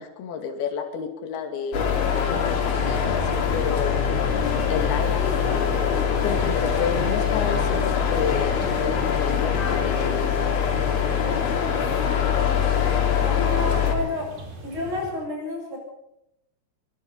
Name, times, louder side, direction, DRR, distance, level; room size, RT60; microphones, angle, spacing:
voice 1, 0.0-1.9 2.3-5.5 6.2-10.5, left 6 dB, 55° left, 4 dB, 4.1 m, -31 dB
sound 1, 1.7-13.9, left 7 dB, 75° left, 5.6 m, -23 dB
sound 2, 2.0-10.7, right 3 dB, 75° right, 9.3 m, -38 dB
sound 3, 4.6-15.1, right 2 dB, 60° right, 6.6 m, -41 dB
voice 2, 13.2-14.3 14.6-15.8, left 2 dB, 40° right, 0 dB, 9.4 m, -30 dB
24.0 x 22.5 x 5.5 m, 0.84 s
omnidirectional pair, 5.5 m